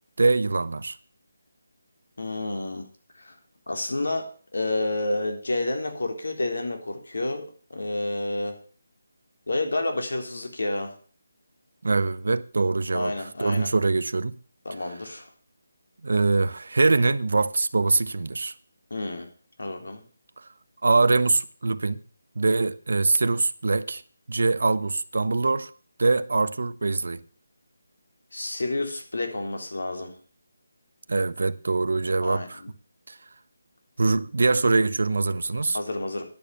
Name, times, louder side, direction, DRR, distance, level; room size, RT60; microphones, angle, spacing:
voice 1, 0.2-1.0 11.8-13.1 13.4-14.4 16.0-18.5 20.8-22.0 22.4-24.0 24.3-25.7 26.0-27.2 31.1-32.6 33.1-33.2 34.0-35.8, right 3 dB, 60° right, 0.9 m, -23 dB
voice 2, 2.2-2.9 3.1-3.4 3.7-4.3 4.5-8.5 9.5-10.9 12.9-13.7 14.7-15.3 18.9-19.3 19.6-20.0 28.3-30.1 32.2-32.7 35.7-36.2, left 2 dB, 70° left, 3.9 m, -29 dB
10.5 x 8.7 x 7.0 m
figure-of-eight pair, 175°, 0 cm